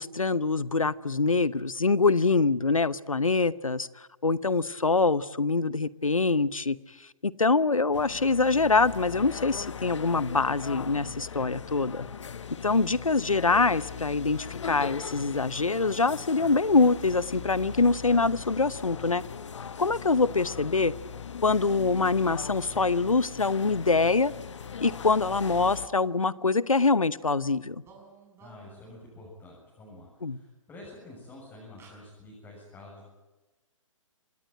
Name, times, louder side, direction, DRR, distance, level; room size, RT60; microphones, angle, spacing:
voice 1, 0.0-3.9 4.2-6.8 7.2-12.1 12.6-19.2 19.8-20.9 21.4-24.3 24.8-27.8 30.2-30.4, left 3 dB, 85° left, 18 dB, 0.9 m, -24 dB
sound 1, 7.9-25.9, left 7 dB, 60° left, 1.3 m, -40 dB
sound 2, 22.7-23.8 25.3-27.4 27.8-29.3 30.8-30.9 31.3-31.5 31.8-31.9, right 4 dB, 15° right, 5.4 m, -56 dB
voice 2, 28.4-33.1, left 2 dB, 10° left, -4 dB, 7.4 m, -48 dB
26.5 x 19.0 x 9.0 m, 1.1 s
figure-of-eight pair, 130°, 17 cm